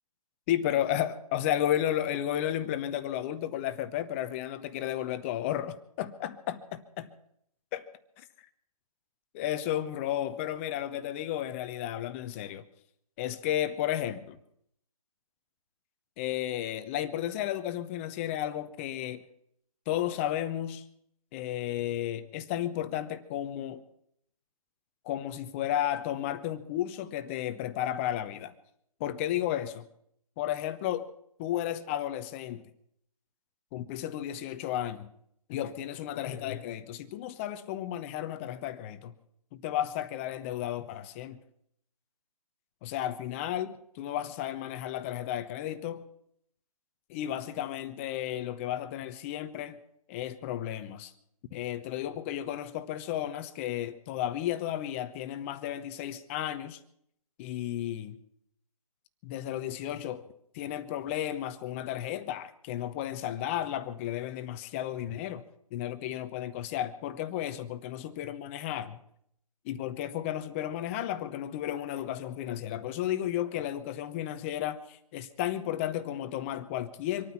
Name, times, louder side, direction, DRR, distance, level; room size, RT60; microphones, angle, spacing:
voice 1, 0.5-7.1 7.7-7.9 8.2-8.3 9.3-12.7 13.2-14.4 16.2-19.2 19.9-20.8 21.3-23.8 25.0-28.5 29.0-29.9 30.4-31.1 31.4-32.7 33.7-35.1 35.5-39.1 39.5-41.4 42.8-46.0 47.1-49.8 50.1-51.1 51.5-56.8 57.4-58.2 59.2-60.2 60.5-65.4 65.7-69.0 69.6-77.3, left 11 dB, 20° left, 0.8 m, -33 dB
25.5 x 9.3 x 5.8 m
figure-of-eight pair, 145°, 19 cm